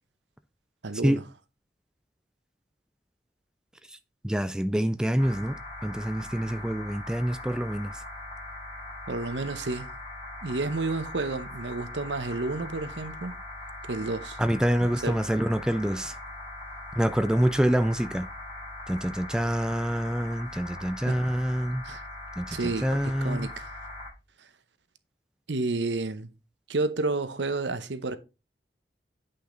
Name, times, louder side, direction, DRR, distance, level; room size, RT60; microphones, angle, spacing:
voice 1, 0.8-1.2 9.1-9.9 10.4-13.3 13.8-14.4 15.0-15.2 21.1-21.2 21.8-22.0 22.5-23.7 24.4-24.5 25.5-26.3 26.7-28.2, right 3 dB, 90° right, 0.8 m, -30 dB
voice 2, 4.2-5.6 5.8-7.9 14.4-16.1 17.0-18.3 18.9-21.8 22.4-23.5, equal, 5° right, 0.3 m, -26 dB
sound 1, 5.2-24.1, left 1 dB, 30° left, 5.3 m, -41 dB
8.6 x 5.6 x 3.8 m
head